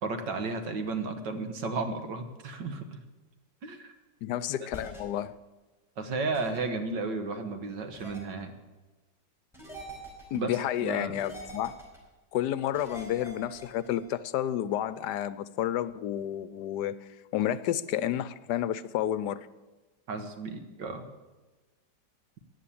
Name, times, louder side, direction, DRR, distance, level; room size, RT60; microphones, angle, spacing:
voice 1, 0.0-2.9 3.6-3.9 6.0-8.5 10.3-11.1 20.1-21.1, right 3 dB, 90° right, 2.0 m, -33 dB
voice 2, 4.2-5.3 10.3-11.8 12.3-16.9 17.3-19.5, left 11 dB, 75° left, 1.2 m, -30 dB
sound 1, 4.7-5.0 6.3-6.6 7.9-8.2 9.5-10.4 11.1-12.0 12.7-14.0, right 1 dB, ahead, 4.6 m, -44 dB
14.5 x 9.7 x 8.6 m
omnidirectional pair, 1.9 m